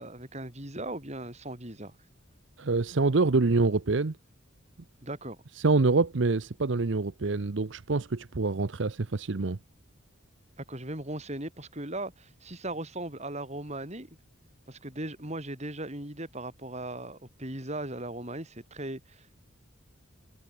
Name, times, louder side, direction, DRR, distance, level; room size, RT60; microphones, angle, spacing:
voice 1, 0.0-2.0 5.0-5.4 10.6-14.1 14.7-19.3, right 1 dB, 35° right, 5.5 m, -38 dB
voice 2, 2.6-4.2 5.6-9.6, right 3 dB, 60° right, 0.7 m, -26 dB
head